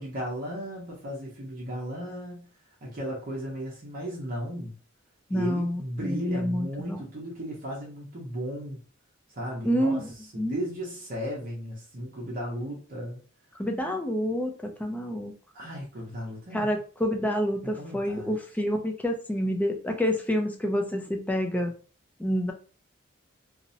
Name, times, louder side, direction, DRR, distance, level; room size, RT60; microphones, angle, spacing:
voice 1, 0.0-2.5 2.8-4.8 5.3-8.8 9.3-10.0 10.3-13.2 15.5-16.7 17.6-18.3, equal, 45° right, -3 dB, 0.7 m, -35 dB
voice 2, 5.3-7.0 9.6-10.6 13.6-15.3 16.5-21.7 22.2-22.5, equal, 10° left, 3 dB, 0.4 m, -28 dB
2.5 x 2.0 x 2.6 m, 0.39 s
head